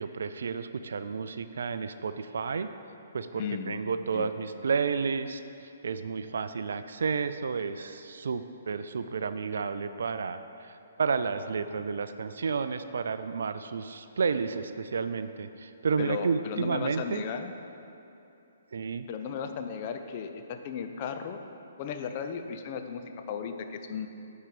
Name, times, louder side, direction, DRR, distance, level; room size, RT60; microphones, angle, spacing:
voice 1, 0.0-2.7 3.1-17.2 18.7-19.1, right 5 dB, 65° right, 11 dB, 0.3 m, -31 dB
voice 2, 3.3-3.8 4.1-4.3 16.0-17.5 19.1-21.4 21.8-24.1, left 7 dB, 40° left, 7 dB, 0.6 m, -35 dB
9.9 x 4.4 x 5.2 m, 2.8 s
figure-of-eight pair, 130°, 0 cm